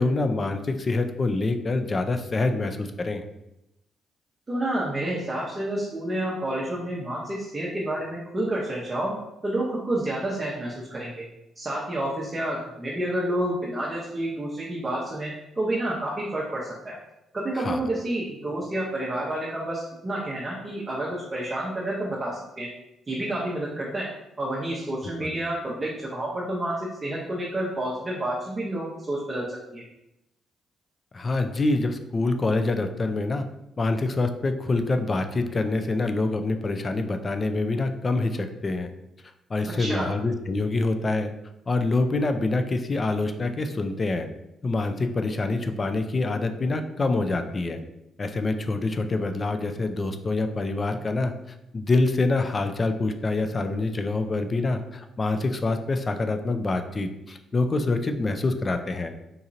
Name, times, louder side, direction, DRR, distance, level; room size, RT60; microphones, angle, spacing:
voice 1, 0.0-3.2 17.5-17.8 25.2-25.4 31.1-33.5 33.8-38.9 39.5-41.3 41.7-44.3 44.6-47.8 48.2-59.1, left 2 dB, 35° left, 7 dB, 0.4 m, -26 dB
voice 2, 4.5-9.2 9.4-11.3 11.6-17.0 17.3-22.7 23.1-24.1 24.4-29.8 39.8-40.1, right 1 dB, 25° right, -5 dB, 0.7 m, -29 dB
3.8 x 2.8 x 2.5 m, 0.88 s
cardioid pair, 90°, 0 cm